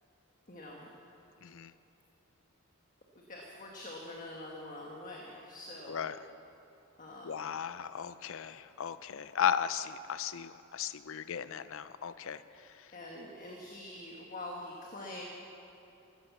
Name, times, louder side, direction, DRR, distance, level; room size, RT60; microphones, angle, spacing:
voice 1, 0.5-0.9 3.1-6.1 7.0-7.5 12.9-15.2, left 1 dB, 35° left, -1 dB, 1.5 m, -45 dB
voice 2, 5.9-6.2 7.2-12.4, left 8 dB, 60° left, 14 dB, 0.5 m, -35 dB
14.5 x 13.0 x 7.2 m, 2.9 s
head